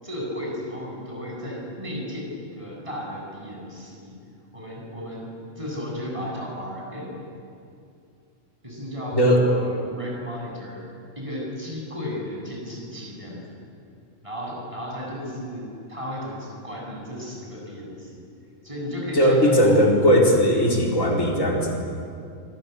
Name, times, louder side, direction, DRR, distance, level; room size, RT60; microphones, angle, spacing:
voice 1, 0.0-4.1 4.5-7.2 8.6-10.8 11.2-13.6 14.2-18.3 18.6-19.9 20.2-20.3, equal, 25° right, -3 dB, 8.2 m, -34 dB
voice 2, 19.1-21.7, equal, 85° left, -1 dB, 4.7 m, -18 dB
26.5 x 26.0 x 8.3 m, 2.5 s
omnidirectional pair, 1.3 m